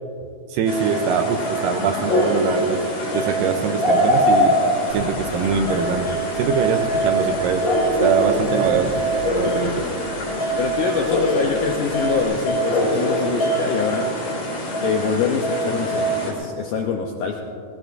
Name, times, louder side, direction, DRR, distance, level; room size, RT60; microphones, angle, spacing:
voice 1, 0.5-2.8 3.1-7.7 8.0-9.0 9.3-9.9, right 6 dB, 80° right, 6 dB, 2.1 m, -23 dB
sound 1, 0.7-16.3, equal, 45° left, 3.1 m, -23 dB
sound 2, 4.9-12.2, right 1 dB, 45° right, 2.9 m, -39 dB
voice 2, 10.6-14.1 14.8-17.4, left 6 dB, 80° left, 2 dB, 1.8 m, -24 dB
19.5 x 17.5 x 2.6 m, 2.6 s
omnidirectional pair, 4.5 m